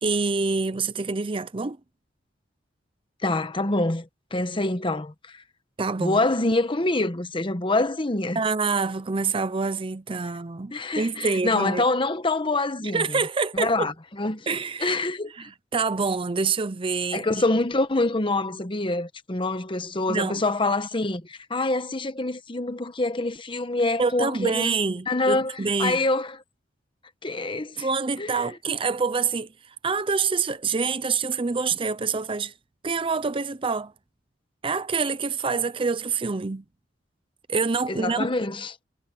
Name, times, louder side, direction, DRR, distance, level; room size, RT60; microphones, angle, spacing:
voice 1, 0.0-1.8 5.8-6.2 8.3-11.8 12.9-13.9 14.5-15.0 15.3-17.4 20.1-20.4 24.0-26.0 27.8-32.5 32.8-33.9 34.6-36.6 37.5-38.3, right 4 dB, 30° right, 0.6 m, -26 dB
voice 2, 3.2-5.1 6.0-8.4 10.7-13.2 13.6-14.5 14.8-15.3 17.1-24.8 25.1-25.5 25.8-26.4 27.2-27.9 28.2-28.4 37.9-38.7, left 2 dB, 30° left, 1.1 m, -25 dB
head